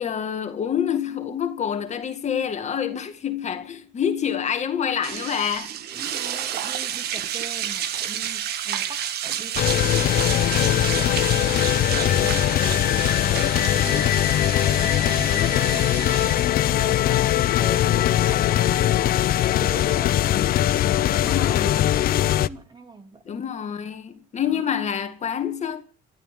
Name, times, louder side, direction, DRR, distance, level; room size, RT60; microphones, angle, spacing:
voice 1, 0.0-5.7 20.3-20.4 21.1-21.9 23.3-25.8, left 8 dB, 45° left, 1.9 m, -27 dB
sound 1, 5.0-18.6, right 10 dB, 70° right, 1.5 m, -31 dB
voice 2, 5.9-14.3 14.6-16.2 16.5-19.1 19.6-20.3 20.7-21.8 22.1-23.4 24.5-24.8, right 3 dB, 25° right, 3.0 m, -41 dB
sound 2, 9.6-22.5, left 13 dB, 60° left, 0.7 m, -21 dB
29.5 x 13.0 x 3.7 m
cardioid pair, 110°, 17 cm